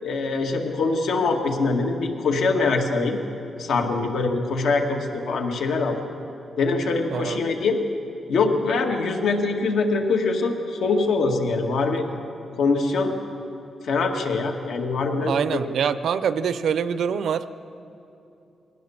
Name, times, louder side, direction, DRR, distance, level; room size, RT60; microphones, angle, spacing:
voice 1, 0.0-3.2 3.6-6.0 6.6-7.8 8.3-12.0 12.6-13.1 13.5-15.3, left 3 dB, 85° left, 2 dB, 2.0 m, -23 dB
voice 2, 7.1-7.4 15.2-17.4, right 7 dB, 75° right, 13 dB, 0.7 m, -24 dB
22.0 x 18.5 x 7.2 m, 2.8 s
wide cardioid pair, 135°, 0 cm